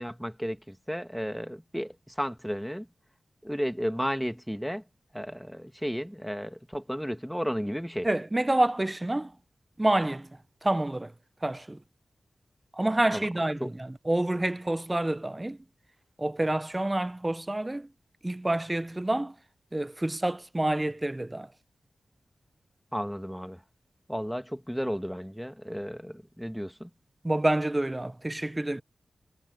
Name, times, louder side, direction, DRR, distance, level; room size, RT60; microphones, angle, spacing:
voice 1, 0.0-2.9 3.4-4.8 5.1-8.1 13.1-13.3 13.6-13.7 22.9-23.6 24.1-26.9, equal, ahead, 1.6 m, -33 dB
voice 2, 8.0-9.4 9.8-11.1 11.4-11.8 12.7-15.6 16.2-17.9 18.2-19.4 19.7-21.5 27.2-28.8, right 1 dB, 20° right, 0.4 m, -28 dB
cardioid pair, 60°, 0 cm